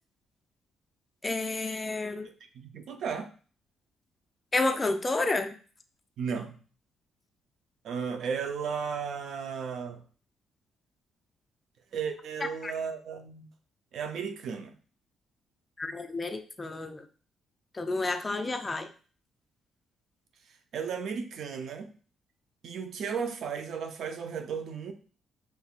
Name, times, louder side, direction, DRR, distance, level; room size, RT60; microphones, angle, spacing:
voice 1, 1.2-2.3 4.5-5.5 12.6-12.7 15.8-17.1 17.7-18.9, left 2 dB, 25° left, 0.5 m, -30 dB
voice 2, 2.5-3.3 6.2-6.6 7.8-10.0 11.9-13.5 13.9-14.7 20.7-21.9 22.6-24.9, right 6 dB, 70° right, 0.6 m, -34 dB
5.1 x 3.3 x 2.4 m
cardioid pair, 90°, 0 cm